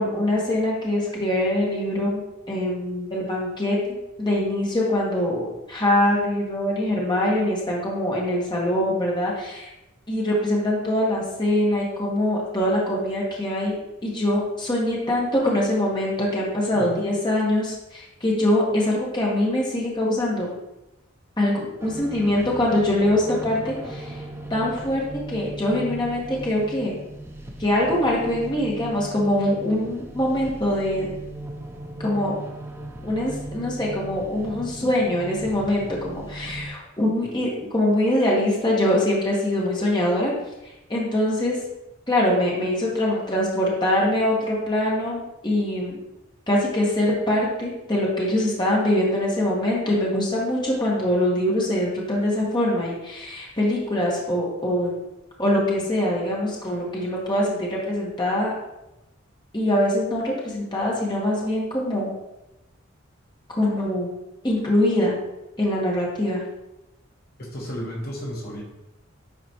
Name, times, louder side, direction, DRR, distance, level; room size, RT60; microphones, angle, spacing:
voice 1, 0.0-2.2 2.5-9.7 10.1-13.7 14.0-20.5 21.4-24.2 24.5-27.0 27.6-31.1 32.0-32.4 33.0-40.3 40.6-41.6 42.1-46.0 46.5-54.9 55.4-58.5 59.5-62.1 63.5-64.1 64.4-65.2 65.6-66.4, left 1 dB, 20° left, -4 dB, 1.5 m, -23 dB
voice 2, 16.7-17.1 67.4-68.6, equal, 50° left, -3 dB, 1.3 m, -33 dB
sound 1, 21.8-36.7, right 1 dB, 15° right, 0.6 m, -38 dB
10.0 x 4.0 x 3.0 m, 0.93 s
head